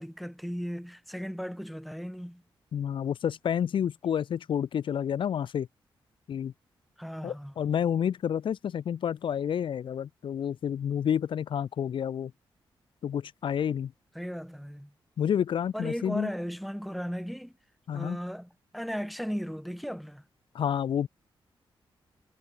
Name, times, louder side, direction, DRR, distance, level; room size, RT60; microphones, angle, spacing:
voice 1, 0.0-2.4 7.0-7.5 14.2-14.9 15.7-17.5 17.9-20.2, equal, ahead, 3.6 m, -36 dB
voice 2, 2.7-5.7 6.3-6.5 7.2-12.3 13.0-13.9 15.2-16.3 17.9-18.2 20.5-21.1, left 8 dB, 70° left, 1.5 m, -29 dB
wide cardioid pair, 170°, 9 cm